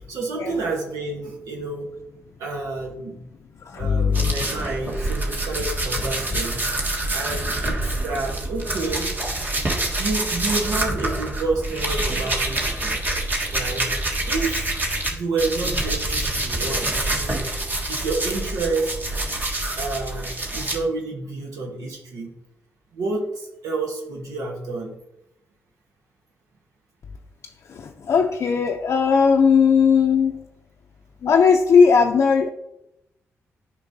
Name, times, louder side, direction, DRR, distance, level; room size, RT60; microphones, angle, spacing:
voice 1, 0.1-1.9 2.4-3.2 3.7-6.7 7.1-9.1 10.0-13.0 13.5-13.8 14.3-14.6 15.1-17.5 17.9-18.9 19.8-22.3 22.9-24.9, right 3 dB, 90° right, 0 dB, 1.1 m, -29 dB
voice 2, 3.6-4.3 27.7-30.4 31.2-32.5, left 6 dB, 60° left, 1 dB, 0.5 m, -18 dB
sound 1, 4.1-15.1 15.4-20.8, right 1 dB, 35° right, 1.4 m, -26 dB
8.4 x 5.2 x 2.7 m, 0.85 s
cardioid pair, 75°, 5 cm